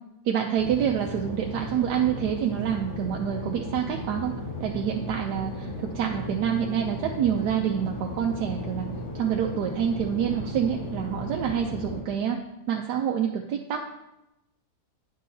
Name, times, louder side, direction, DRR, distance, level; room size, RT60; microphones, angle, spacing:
voice 1, 0.2-4.3 4.6-8.9 9.1-12.4 12.7-13.8, right 8 dB, 85° right, 1 dB, 1.2 m, -27 dB
sound 1, 0.6-12.0, equal, 35° left, 1.8 m, -35 dB
9.4 x 6.2 x 2.7 m, 0.89 s
omnidirectional pair, 1.7 m